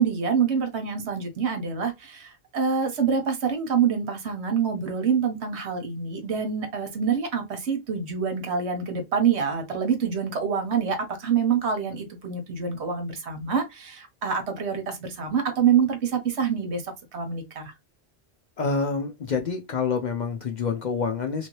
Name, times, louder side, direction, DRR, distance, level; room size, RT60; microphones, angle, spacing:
voice 1, 0.0-17.7, right 6 dB, 75° right, 1.1 m, -26 dB
voice 2, 18.6-21.5, left 5 dB, 55° left, 0.6 m, -27 dB
2.9 x 2.7 x 2.9 m
omnidirectional pair, 1.1 m